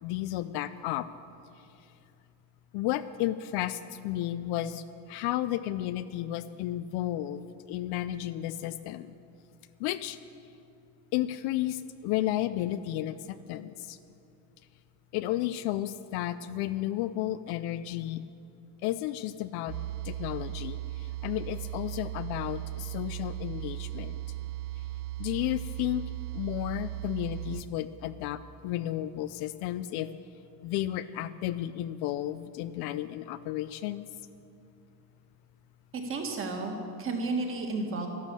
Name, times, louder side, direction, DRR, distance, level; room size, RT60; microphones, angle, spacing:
voice 1, 0.0-1.1 2.7-9.1 9.8-10.2 11.1-14.0 15.1-18.2 18.8-19.8 20.0-24.2 25.2-30.1 30.6-34.1, left 13 dB, 55° left, 13 dB, 0.5 m, -33 dB
sound 1, 19.7-27.6, right 15 dB, 85° right, 0.7 m, -37 dB
voice 2, 35.9-38.1, right 3 dB, 25° right, 3 dB, 1.7 m, -32 dB
12.0 x 11.5 x 7.5 m, 2.7 s
cardioid pair, 160°, 46 cm